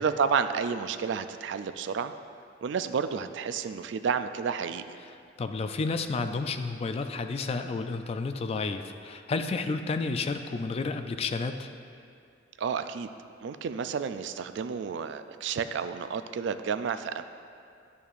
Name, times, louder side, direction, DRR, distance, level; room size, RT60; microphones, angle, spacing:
voice 1, 0.0-2.1 2.6-4.8 12.6-13.1 13.4-17.2, right 6 dB, 65° right, 10 dB, 0.3 m, -30 dB
voice 2, 5.4-11.7, left 3 dB, 35° left, 8 dB, 0.3 m, -31 dB
10.5 x 6.9 x 2.5 m, 2.4 s
head